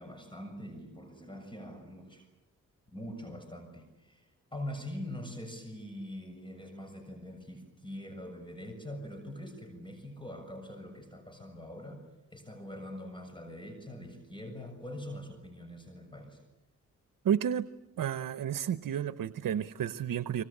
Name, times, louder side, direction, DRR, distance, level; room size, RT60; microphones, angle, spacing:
voice 1, 0.0-2.3 2.9-12.0 12.3-16.4, left 1 dB, 15° left, 6 dB, 7.0 m, -43 dB
voice 2, 17.2-17.7 18.0-20.4, right 9 dB, 80° right, 13 dB, 0.9 m, -31 dB
26.0 x 25.5 x 8.7 m, 0.98 s
cardioid pair, 65°, 33 cm